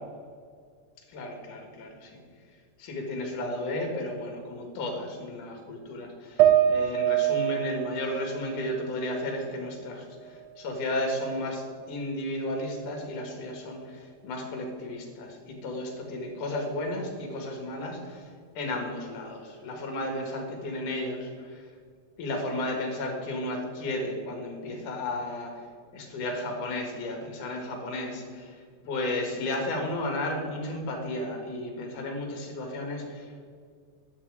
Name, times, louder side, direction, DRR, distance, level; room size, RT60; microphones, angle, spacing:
voice 1, 1.1-2.2 2.8-18.3 18.5-21.7 22.2-25.6 25.9-33.5, left 1 dB, 80° left, 2 dB, 3.3 m, -33 dB
sound 1, 6.4-9.8 10.2-11.2, right 11 dB, 80° right, 2.1 m, -26 dB
11.5 x 8.4 x 4.8 m, 2.1 s
omnidirectional pair, 3.6 m